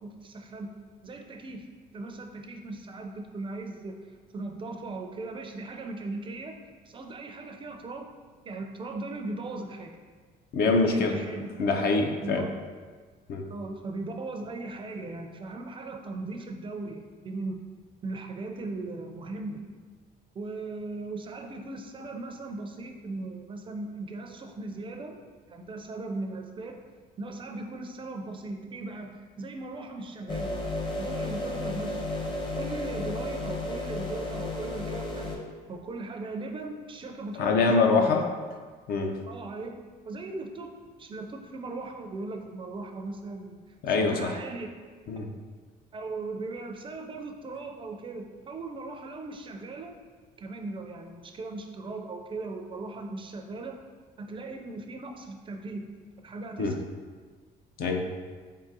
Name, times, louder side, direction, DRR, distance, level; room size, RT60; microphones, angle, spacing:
voice 1, 0.0-0.7 1.0-1.7 1.9-8.1 8.4-10.0 10.6-11.5 12.2-12.5 13.5-17.6 18.0-19.6 20.3-25.2 25.5-26.8 27.2-30.6 31.0-32.0 32.5-35.3 35.7-38.2 39.3-44.7 45.9-49.9 50.4-53.8 54.2-55.9 56.2-56.7 57.8-58.0, right 2 dB, 30° right, 4 dB, 0.4 m, -38 dB
voice 2, 10.5-11.1 11.6-12.5 13.3-13.5 37.4-38.3 38.9-39.2 43.8-44.4 45.1-45.3 56.6-56.8 57.8-58.2, left 3 dB, 65° left, 4 dB, 0.5 m, -24 dB
sound 1, 30.3-35.4, left 2 dB, 30° left, 0.7 m, -33 dB
4.0 x 3.7 x 2.7 m, 1.5 s
cardioid pair, 110°, 17 cm